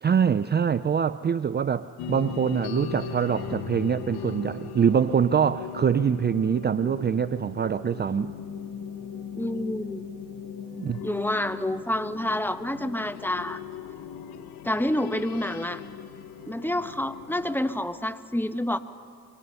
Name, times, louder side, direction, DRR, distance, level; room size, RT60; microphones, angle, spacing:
voice 1, 0.0-8.3 10.8-11.0, right 7 dB, 30° right, 14 dB, 0.5 m, -24 dB
sound 1, 2.0-17.9, left 6 dB, 90° left, 1.2 m, -41 dB
sound 2, 2.2-17.6, left 8 dB, 70° left, 1.3 m, -41 dB
voice 2, 9.3-10.0 11.0-13.6 14.6-15.8 16.5-18.8, left 1 dB, 5° left, 10 dB, 1.1 m, -28 dB
26.0 x 23.0 x 5.6 m, 2.2 s
supercardioid pair, 65°, 35 cm